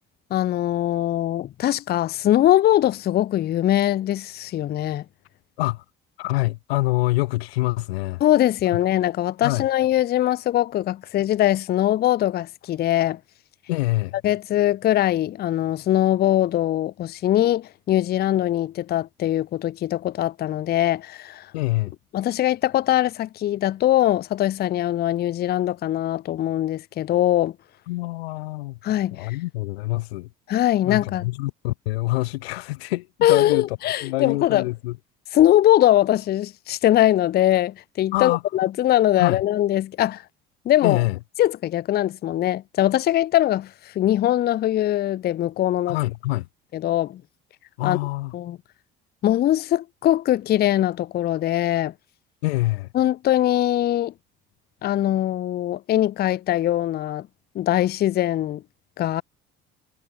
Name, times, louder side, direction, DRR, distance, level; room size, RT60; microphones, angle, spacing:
voice 1, 0.3-5.0 8.2-13.2 14.2-21.5 22.1-27.5 28.8-29.4 30.5-31.3 33.2-34.6 35.3-40.2 40.7-41.0 41.4-46.0 46.7-47.2 47.8-48.0 48.3-48.6 49.2-51.9 52.9-54.1 54.8-57.3 57.5-58.6 59.0-59.2, left 13 dB, 35° left, 0.4 m, -21 dB
voice 2, 6.2-8.2 9.4-9.7 13.7-14.2 21.5-21.9 27.9-28.8 29.1-30.3 30.8-33.8 34.0-35.0 38.1-38.4 39.2-39.4 40.8-41.2 45.9-46.5 47.8-48.4 52.4-52.9, left 20 dB, 85° left, 0.9 m, -25 dB
hypercardioid pair, 65°, 30 cm